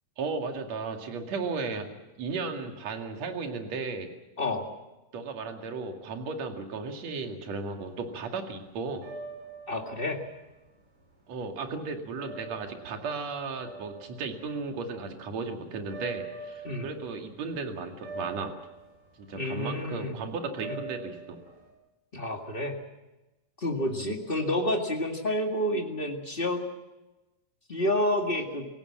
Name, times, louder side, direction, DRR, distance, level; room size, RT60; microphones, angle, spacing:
voice 1, 0.2-4.1 5.1-9.0 11.3-18.5 19.2-21.4 23.9-24.1, right 4 dB, 45° right, 4 dB, 3.1 m, -35 dB
sound 1, 7.8-21.7, right 4 dB, 65° right, 8.1 m, -44 dB
voice 2, 9.7-10.2 16.6-16.9 19.3-20.2 20.7-20.8 22.1-22.8 23.6-26.6 27.7-28.7, left 1 dB, 35° left, 2 dB, 0.8 m, -29 dB
26.5 x 16.5 x 7.4 m, 1.1 s
omnidirectional pair, 4.6 m